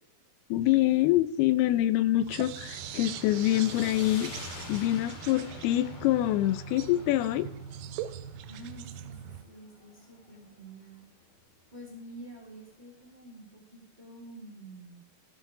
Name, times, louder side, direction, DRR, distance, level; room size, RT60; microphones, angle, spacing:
voice 1, 0.5-4.3 4.7-7.5, left 15 dB, 85° left, 14 dB, 2.6 m, -25 dB
sound 1, 2.2-9.4, right 10 dB, 85° right, 1.9 m, -42 dB
sound 2, 2.3-10.5, left 2 dB, 40° left, 2.5 m, -46 dB
voice 2, 8.5-11.1 11.7-15.0, right 1 dB, 15° right, -1 dB, 2.0 m, -48 dB
14.0 x 5.8 x 4.9 m, 0.79 s
omnidirectional pair, 4.4 m